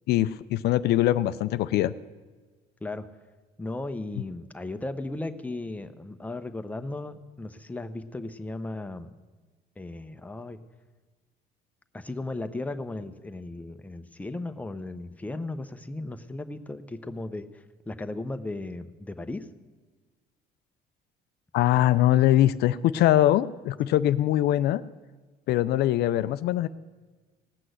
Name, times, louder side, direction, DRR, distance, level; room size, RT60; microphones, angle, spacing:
voice 1, 0.1-1.9 21.5-24.8 25.5-26.7, left 13 dB, 75° left, 14 dB, 0.4 m, -22 dB
voice 2, 3.6-9.2 9.8-10.6 11.9-19.5, left 2 dB, 10° left, 9 dB, 0.7 m, -36 dB
18.0 x 6.1 x 7.9 m, 1.3 s
cardioid pair, 110°, 17 cm